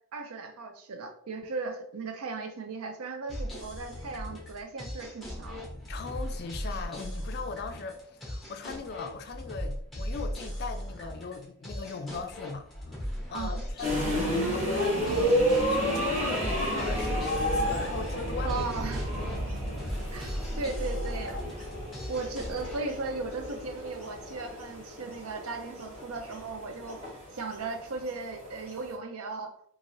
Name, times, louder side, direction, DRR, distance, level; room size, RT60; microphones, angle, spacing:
voice 1, 0.1-5.6 13.3-13.6 18.4-19.0 20.1-21.4 22.1-27.0 27.3-29.5, right 3 dB, 85° right, 0.5 m, -37 dB
sound 1, 3.3-22.8, equal, ahead, 0.8 m, -38 dB
voice 2, 5.9-18.6 19.2-19.3, left 5 dB, 45° left, 0.3 m, -39 dB
sound 2, 13.8-28.9, equal, 30° right, 1.0 m, -31 dB
3.0 x 2.5 x 2.5 m
head